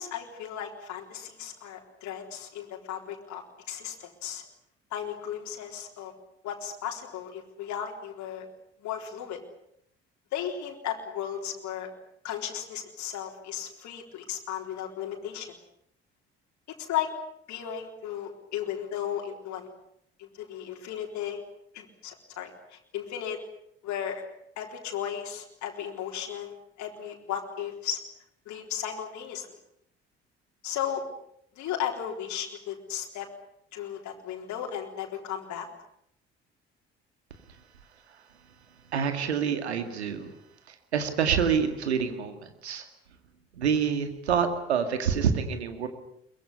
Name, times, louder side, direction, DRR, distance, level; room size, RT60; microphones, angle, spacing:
voice 1, 0.0-4.4 4.9-6.1 6.4-8.5 8.8-9.4 10.3-11.9 12.2-15.5 16.7-17.1 17.5-19.7 20.2-21.4 21.7-23.4 23.8-24.2 24.6-28.0 28.5-29.5 30.6-31.0 31.6-33.3 33.7-35.7, left 9 dB, 60° left, 1 dB, 4.0 m, -35 dB
voice 2, 38.9-40.3 40.7-42.8 43.5-45.9, right 7 dB, 85° right, 8 dB, 2.1 m, -27 dB
23.0 x 21.0 x 9.9 m, 0.75 s
figure-of-eight pair, 50°, 32 cm